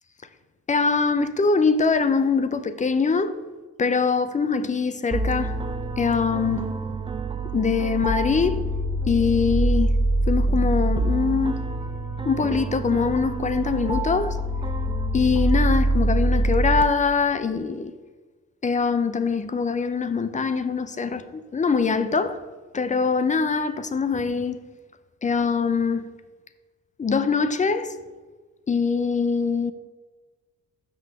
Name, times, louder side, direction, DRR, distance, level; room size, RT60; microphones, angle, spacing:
voice 1, 0.7-3.4 3.8-5.6 6.0-6.8 7.5-8.7 9.1-10.0 10.3-11.6 12.2-14.4 15.1-17.9 18.6-22.4 22.7-24.6 25.2-26.1 27.0-27.9 28.7-29.7, left 5 dB, 25° left, 0.5 m, -23 dB
sound 1, 5.1-16.8, right 1 dB, 15° right, 0.6 m, -25 dB
6.1 x 5.4 x 6.5 m
cardioid pair, 90°, 30 cm